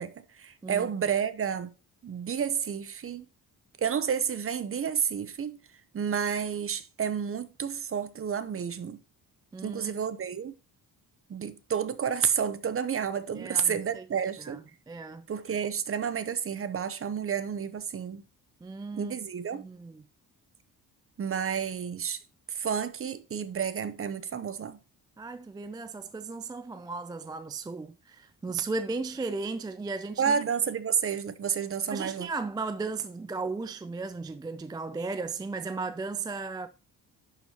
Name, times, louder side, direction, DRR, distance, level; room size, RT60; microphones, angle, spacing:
voice 1, 0.0-1.7 2.0-3.3 3.8-5.6 5.9-9.0 9.6-10.5 11.3-14.6 15.3-18.2 19.0-19.6 21.2-22.2 22.5-24.8 30.2-32.3, right 7 dB, 35° right, 0.7 m, -30 dB
voice 2, 9.5-9.9 13.3-14.1 14.4-14.6 14.9-15.3 18.6-19.2 19.5-20.0 25.2-30.4 31.9-36.7, right 4 dB, 10° right, 0.3 m, -35 dB
11.0 x 4.4 x 2.9 m
cardioid pair, 105°, 37 cm